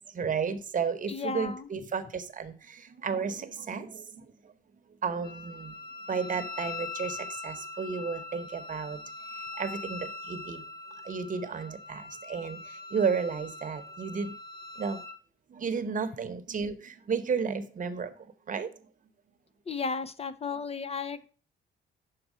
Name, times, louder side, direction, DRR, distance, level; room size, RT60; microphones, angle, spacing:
voice 1, 0.1-4.3 5.0-5.7 6.1-9.0 9.5-10.6 11.0-14.3 14.8-15.0 15.5-18.1 18.5-18.7, right 5 dB, 40° right, 9 dB, 0.9 m, -33 dB
voice 2, 1.1-1.7 19.7-21.3, left 4 dB, 30° left, 13 dB, 0.4 m, -34 dB
Wind instrument woodwind instrument, 5.2-15.2, left 3 dB, 50° left, 0.8 m, -42 dB
6.5 x 4.3 x 6.0 m, 0.40 s
cardioid pair, 90°, 20 cm